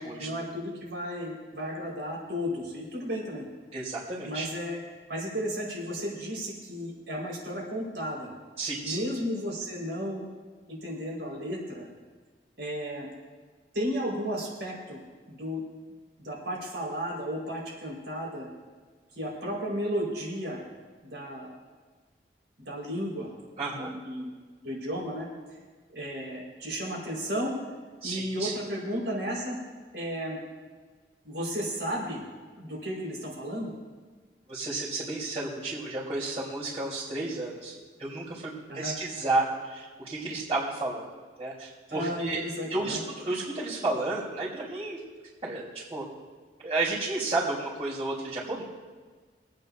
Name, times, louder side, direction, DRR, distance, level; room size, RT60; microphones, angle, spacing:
voice 1, 0.0-3.5 4.2-4.8 5.1-8.3 8.8-10.3 10.7-11.9 12.6-13.1 13.7-15.0 15.3-15.6 16.2-18.5 19.1-20.6 21.0-21.5 22.6-23.3 23.7-24.3 24.6-25.3 25.9-27.6 28.0-29.6 29.9-30.4 31.2-32.2 32.6-33.7 38.7-38.9 41.9-43.0, equal, 90° right, -3 dB, 4.6 m, -33 dB
voice 2, 3.7-4.5 8.6-9.0 23.6-23.9 28.0-28.5 34.5-37.7 38.0-41.0 41.4-45.0 45.4-46.0 46.6-48.6, right 2 dB, 35° right, -11 dB, 3.2 m, -32 dB
27.0 x 9.2 x 2.6 m, 1.5 s
head